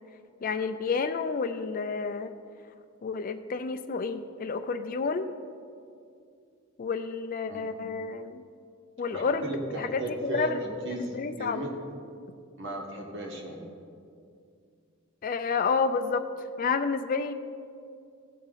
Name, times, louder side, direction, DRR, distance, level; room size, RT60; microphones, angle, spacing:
voice 1, 0.4-2.3 3.0-5.3 6.8-8.4 9.0-9.5 9.8-10.6 11.0-11.6 15.2-16.2 16.6-17.3, left 5 dB, 40° left, 10 dB, 0.4 m, -30 dB
voice 2, 9.1-11.7 12.6-13.6, right 1 dB, 60° right, 0 dB, 1.6 m, -35 dB
16.0 x 5.6 x 4.0 m, 2.4 s
head